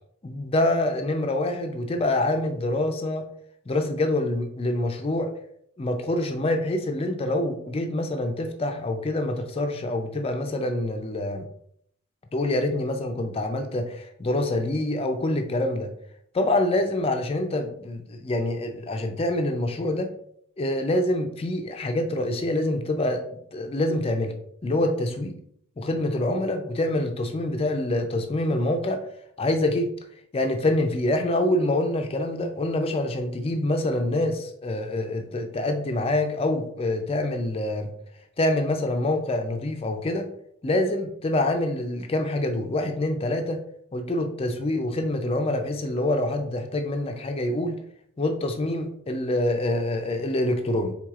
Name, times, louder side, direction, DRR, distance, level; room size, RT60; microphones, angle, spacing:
voice 1, 0.2-3.3 3.7-5.3 5.8-11.5 12.3-15.9 16.3-20.1 20.6-23.2 23.5-24.3 24.6-25.4 25.8-29.0 29.4-29.9 30.3-37.9 38.4-40.3 40.6-43.6 43.9-47.8 48.2-50.9, left 1 dB, 25° left, 5 dB, 0.4 m, -26 dB
4.7 x 3.4 x 2.4 m, 0.68 s
head